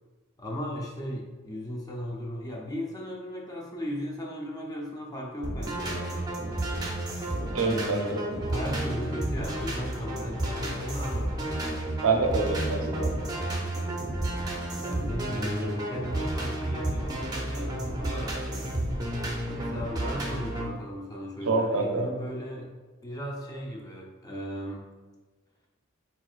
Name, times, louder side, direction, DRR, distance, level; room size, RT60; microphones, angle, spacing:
voice 1, 0.4-6.2 8.5-11.5 14.8-18.4 19.5-22.7 23.0-24.8, equal, 15° left, -2 dB, 0.7 m, -36 dB
sound 1, 5.4-20.7, right 1 dB, 20° right, 0.7 m, -31 dB
voice 2, 7.5-8.2 12.0-13.2 21.5-22.0, right 3 dB, 70° right, 3 dB, 0.7 m, -26 dB
4.7 x 4.3 x 2.4 m, 1.3 s
head